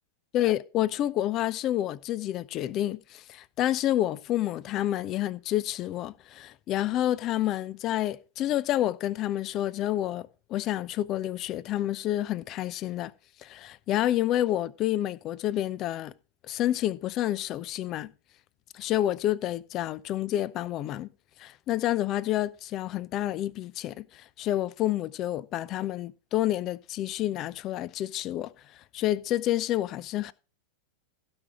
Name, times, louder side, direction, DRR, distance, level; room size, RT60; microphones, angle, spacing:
voice 1, 0.3-13.1 13.4-16.1 16.5-18.1 18.7-21.1 21.4-28.5 28.9-30.3, left 13 dB, 35° left, 0.5 m, -29 dB
16.0 x 6.2 x 3.6 m
figure-of-eight pair, 90°, 0 cm